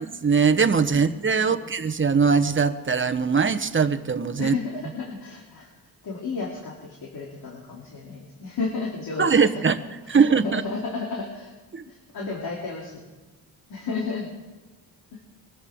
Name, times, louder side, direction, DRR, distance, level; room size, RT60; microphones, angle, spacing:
voice 1, 0.2-4.5 9.2-9.8 10.1-10.6 11.7-11.8, right 5 dB, 30° right, 8 dB, 1.1 m, -21 dB
voice 2, 1.4-1.7 4.4-5.7 6.0-9.6 10.0-11.5 11.8-13.1 13.7-14.3 15.1-15.2, left 4 dB, 65° left, -3 dB, 3.2 m, -33 dB
23.5 x 14.0 x 3.7 m, 1.3 s
cardioid pair, 85°, 39 cm